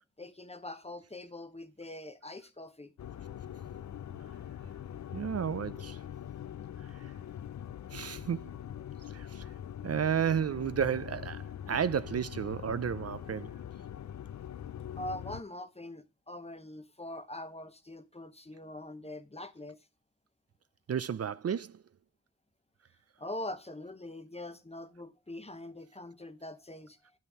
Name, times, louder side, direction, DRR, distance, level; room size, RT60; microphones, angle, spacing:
voice 1, 0.2-2.9 15.0-19.8 23.2-27.0, left 1 dB, 20° left, 0.9 m, -43 dB
sound 1, 3.0-15.4, left 10 dB, 70° left, 0.5 m, -43 dB
voice 2, 5.1-6.0 6.9-7.1 7.9-8.5 9.1-9.5 9.8-13.5 20.9-21.8, right 8 dB, 55° right, 0.4 m, -32 dB
9.0 x 5.7 x 4.7 m
wide cardioid pair, 65°, 29 cm